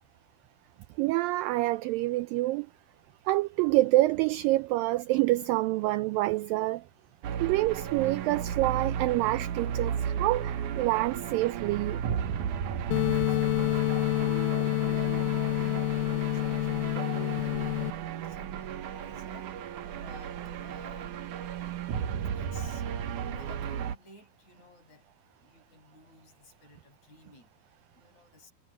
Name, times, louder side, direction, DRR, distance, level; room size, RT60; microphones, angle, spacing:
voice 1, 1.0-2.7 3.3-6.8 7.4-12.0, right 18 dB, 85° right, 2.0 m, -27 dB
sound 1, 7.2-24.0, right 8 dB, 65° right, 2.3 m, -34 dB
sound 2, 12.9-17.9, left 18 dB, 80° left, 2.1 m, -28 dB
voice 2, 13.3-19.6 19.9-21.4 22.3-22.9 23.2-28.5, left 4 dB, 45° left, 7.4 m, -55 dB
omnidirectional pair, 4.6 m